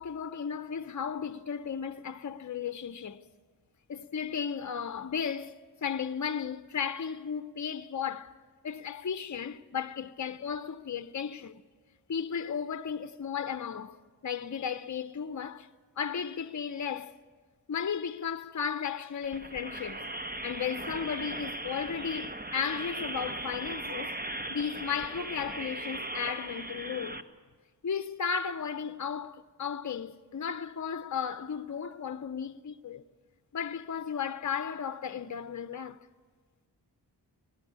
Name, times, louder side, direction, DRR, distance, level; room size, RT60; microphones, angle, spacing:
voice 1, 0.0-3.2 3.9-8.4 8.6-11.6 12.1-14.0 14.2-15.7 16.0-17.2 17.7-20.0 20.4-24.2 24.5-27.2 27.8-33.0 33.5-36.0, left 7 dB, 45° left, 0.8 m, -35 dB
sound 1, 19.2-27.2, right 1 dB, 20° right, 1.2 m, -38 dB
19.0 x 18.5 x 9.5 m
cardioid pair, 50°, 42 cm